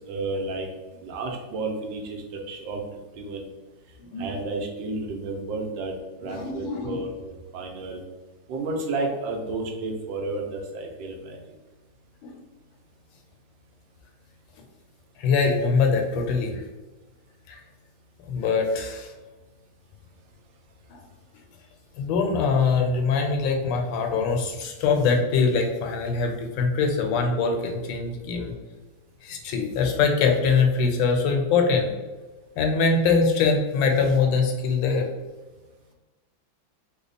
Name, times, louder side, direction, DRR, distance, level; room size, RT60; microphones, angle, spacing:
voice 1, 0.1-0.7 1.0-2.8 3.2-3.5 4.2-5.9 6.2-7.1 7.5-8.0 8.5-11.4, right 2 dB, 80° right, 2 dB, 1.3 m, -31 dB
voice 2, 6.2-7.1 12.2-12.3 15.2-16.6 17.5-17.6 18.2-19.1 20.9-21.0 22.0-28.5 29.2-31.9 32.6-35.1, left 4 dB, 80° left, 2 dB, 1.3 m, -23 dB
3.3 x 2.0 x 3.9 m, 1.2 s
omnidirectional pair, 2.1 m